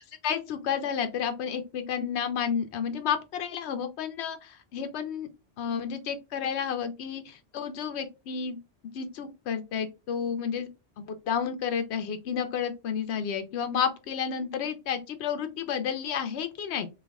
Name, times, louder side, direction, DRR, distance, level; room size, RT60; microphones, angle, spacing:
voice 1, 0.2-5.3 5.6-8.6 8.9-10.7 11.0-16.9, left 7 dB, 75° left, 0.9 m, -31 dB
3.3 x 2.3 x 3.4 m
omnidirectional pair, 1.1 m